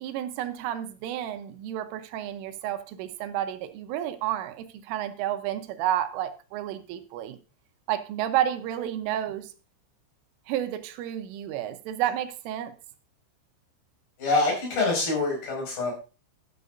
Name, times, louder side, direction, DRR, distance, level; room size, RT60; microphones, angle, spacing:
voice 1, 0.0-7.4 7.9-9.5 10.5-12.7, right 11 dB, 80° right, 3.4 m, -31 dB
voice 2, 14.2-15.9, left 3 dB, 50° left, 7.1 m, -25 dB
13.0 x 11.5 x 2.6 m
omnidirectional pair, 5.9 m